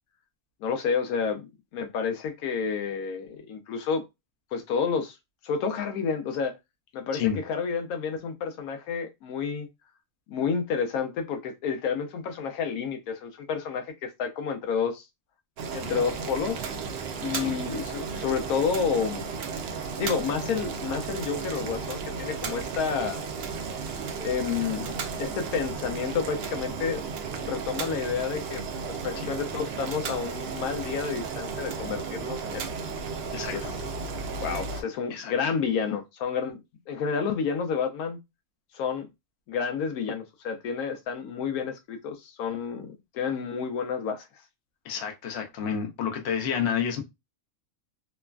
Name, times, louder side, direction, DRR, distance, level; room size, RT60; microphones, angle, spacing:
voice 1, 0.6-4.0 4.5-5.2 5.4-6.6 6.9-9.7 10.3-15.0 15.7-16.7 17.2-19.3 20.0-23.3 24.2-27.0 27.4-32.7 33.5-33.8 34.4-36.6 36.9-38.2 38.7-39.1 39.5-44.3, left 6 dB, 85° left, 1.1 m, -30 dB
Boiling, 15.6-34.8, right 5 dB, 70° right, 0.6 m, -34 dB
voice 2, 33.3-33.7 35.1-35.3 44.8-47.0, left 8 dB, 55° left, 0.9 m, -30 dB
3.0 x 2.2 x 2.3 m
omnidirectional pair, 1.5 m